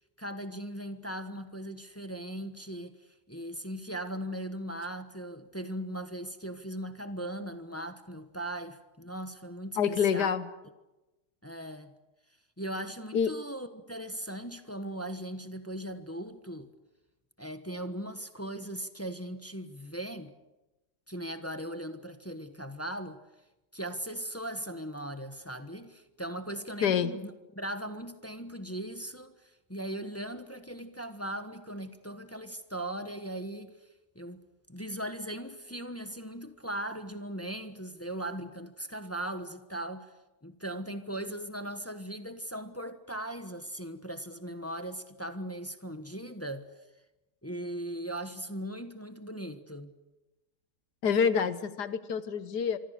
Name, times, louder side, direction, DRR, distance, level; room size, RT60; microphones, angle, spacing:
voice 1, 0.2-3.0 3.3-10.3 11.4-11.9 12.6-16.7 17.4-20.3 21.1-23.2 23.7-33.7 34.1-34.4 34.7-40.1 40.4-46.7 47.4-49.9, right 1 dB, 10° left, 1.1 m, -39 dB
voice 2, 9.8-10.5 13.1-13.3 26.8-27.1 51.0-52.8, left 7 dB, 75° left, 1.6 m, -27 dB
26.0 x 24.5 x 6.7 m
omnidirectional pair, 1.8 m